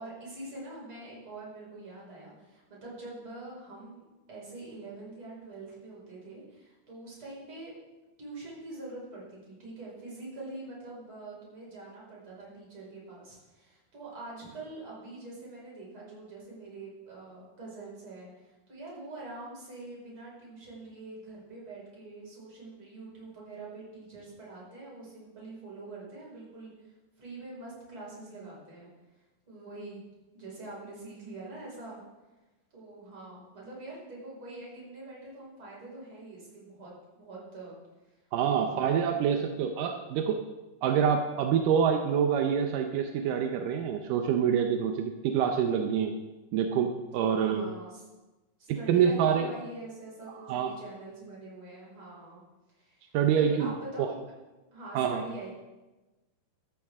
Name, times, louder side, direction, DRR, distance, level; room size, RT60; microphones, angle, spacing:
voice 1, 0.0-7.7 8.2-28.9 29.5-30.0 30.3-32.0 32.7-37.8 38.5-38.8 47.2-48.0 48.6-52.4 52.7-54.3 54.7-55.6, right 2 dB, 30° right, -5 dB, 5.7 m, -44 dB
voice 2, 38.3-40.4 40.8-46.1 46.5-47.7 48.7-49.5 50.5-50.7 53.1-54.1 54.9-55.2, right 7 dB, 75° right, 4 dB, 2.0 m, -26 dB
14.5 x 14.0 x 3.6 m, 1.1 s
omnidirectional pair, 4.7 m